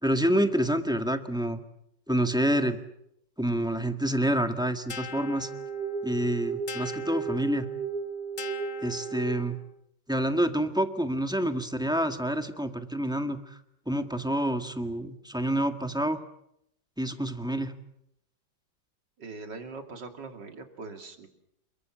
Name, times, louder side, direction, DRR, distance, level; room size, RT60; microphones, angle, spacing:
voice 1, 0.0-1.6 2.1-2.8 3.4-5.5 6.0-7.7 8.8-9.6 10.1-13.4 13.9-16.2 17.0-17.7, right 1 dB, ahead, 7 dB, 1.6 m, -27 dB
sound 1, 4.9-9.7, right 4 dB, 30° left, 1.4 m, -35 dB
voice 2, 19.2-21.3, right 3 dB, 65° right, 5 dB, 3.3 m, -41 dB
28.5 x 22.5 x 7.5 m, 0.79 s
omnidirectional pair, 2.0 m